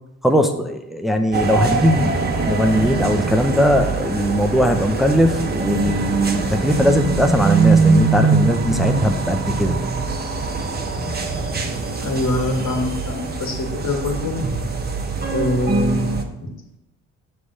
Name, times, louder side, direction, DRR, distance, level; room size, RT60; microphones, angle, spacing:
voice 1, 0.2-9.8, equal, ahead, 5 dB, 0.7 m, -19 dB
sound 1, 1.3-16.2, right 4 dB, 35° right, 0.9 m, -22 dB
voice 2, 12.0-14.3 15.3-16.5, left 1 dB, 65° left, 2 dB, 1.8 m, -24 dB
6.9 x 3.4 x 5.4 m, 0.89 s
cardioid pair, 90°, 30 cm